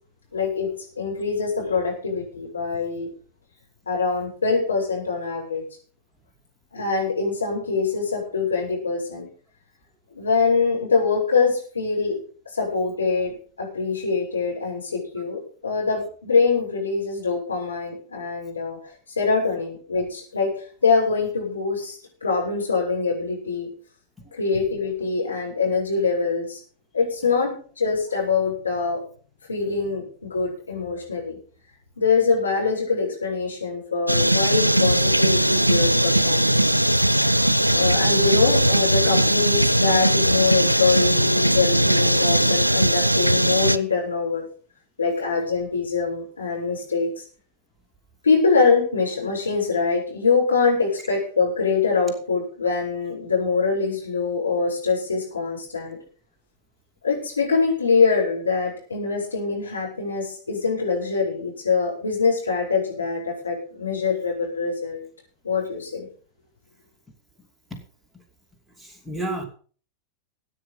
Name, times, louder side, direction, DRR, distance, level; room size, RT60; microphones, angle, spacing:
voice 1, 0.3-0.7 1.0-3.1 3.9-5.6 6.7-9.3 10.1-12.2 12.5-13.3 13.6-18.8 19.2-20.5 20.8-23.7 24.3-26.6 26.9-29.0 29.5-31.4 32.0-36.8 37.7-44.4 45.0-47.1 48.2-56.0 57.0-65.0 65.4-66.1, left 4 dB, 75° left, -2 dB, 6.9 m, -24 dB
sound 1, 34.1-43.8, right 1 dB, 85° right, 0.6 m, -19 dB
voice 2, 68.8-69.5, right 1 dB, ahead, 0 dB, 2.8 m, -31 dB
15.5 x 9.3 x 5.5 m, 0.42 s
figure-of-eight pair, 90°, 0 cm